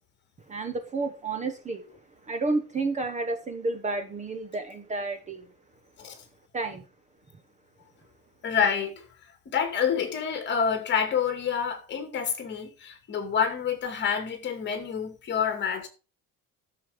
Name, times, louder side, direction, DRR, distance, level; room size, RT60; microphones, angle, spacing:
voice 1, 0.5-1.8 2.3-5.5 6.5-6.8, right 3 dB, 20° right, 1.0 m, -30 dB
voice 2, 8.4-9.0 9.5-15.9, left 7 dB, 30° left, 2.4 m, -28 dB
13.0 x 6.9 x 5.1 m
cardioid pair, 170°, 34 cm